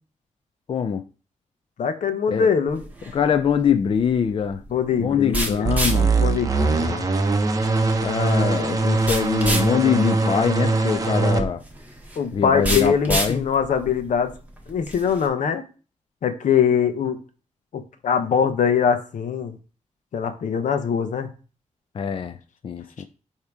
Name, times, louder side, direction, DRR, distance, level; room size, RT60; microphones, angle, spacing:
voice 1, 0.7-1.0 2.3-2.5 3.1-4.6 5.0-6.1 8.0-11.6 12.3-13.4 21.9-22.4 22.6-23.1, left 7 dB, 45° left, 0.4 m, -23 dB
voice 2, 1.8-2.8 4.7-5.7 6.2-7.1 12.2-14.3 14.7-15.6 16.2-17.2 17.7-19.6 20.1-21.3, left 7 dB, 85° left, 0.8 m, -22 dB
sound 1, 2.7-15.3, right 1 dB, 10° right, 1.1 m, -31 dB
sound 2, 5.7-11.4, right 3 dB, 30° right, 0.6 m, -22 dB
8.4 x 2.9 x 4.6 m
wide cardioid pair, 155°, 13 cm